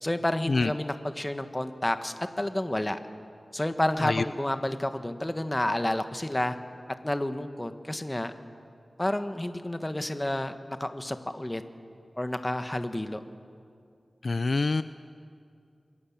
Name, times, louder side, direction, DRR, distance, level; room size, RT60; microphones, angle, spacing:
voice 1, 0.0-3.0 3.5-6.6 7.0-8.3 9.0-10.5 10.8-11.6 12.2-13.2, left 1 dB, 20° left, 8 dB, 1.4 m, -30 dB
voice 2, 14.2-14.8, left 3 dB, 60° left, 12 dB, 0.5 m, -25 dB
28.5 x 23.5 x 7.4 m, 2.4 s
wide cardioid pair, 85°, 0 cm